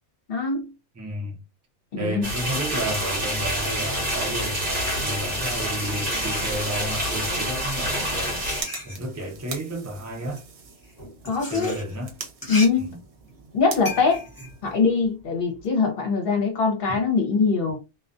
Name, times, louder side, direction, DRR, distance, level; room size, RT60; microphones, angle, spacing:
voice 1, 0.3-0.7 1.9-2.3 11.2-11.7 12.5-12.9 13.5-14.2 14.6-17.8, left 4 dB, 55° left, 0.9 m, -22 dB
voice 2, 1.0-1.4 2.0-8.5 8.9-10.4 11.5-12.1 12.8-13.0, equal, 20° right, 0.4 m, -32 dB
sound 1, 2.2-8.6, equal, 45° right, 0.9 m, -27 dB
sound 2, 5.1-7.0 7.8-15.7, left 1 dB, 20° left, 1.0 m, -38 dB
sound 3, 7.8-15.1, right 5 dB, 70° right, 0.9 m, -42 dB
2.4 x 2.3 x 2.5 m
omnidirectional pair, 1.2 m